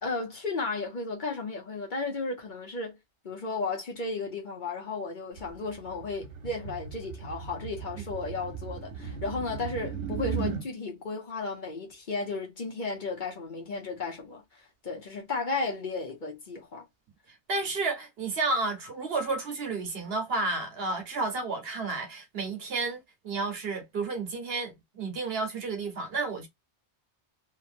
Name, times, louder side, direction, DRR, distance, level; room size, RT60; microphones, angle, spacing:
voice 1, 0.0-2.9 3.2-16.8, left 3 dB, 45° left, 1.0 m, -34 dB
sound 1, 5.4-10.7, right 6 dB, 85° right, 1.1 m, -37 dB
voice 2, 17.5-26.5, right 3 dB, 60° right, 1.1 m, -31 dB
3.0 x 2.5 x 2.5 m
omnidirectional pair, 1.2 m